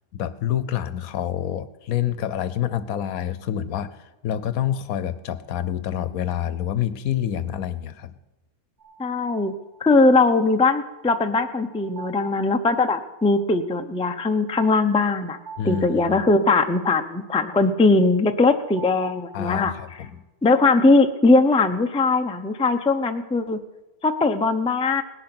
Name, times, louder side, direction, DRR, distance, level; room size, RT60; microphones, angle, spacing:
voice 1, 0.1-8.1 15.6-16.3 19.3-20.2, left 10 dB, 70° left, 14 dB, 1.2 m, -27 dB
sound 1, 8.8-20.1, right 5 dB, 75° right, 7.7 m, -47 dB
voice 2, 9.0-9.5 9.8-15.4 15.6-19.7 20.4-23.6 24.0-25.0, left 3 dB, 5° left, 7 dB, 0.4 m, -20 dB
18.5 x 10.5 x 6.0 m, 1.1 s
omnidirectional pair, 1.6 m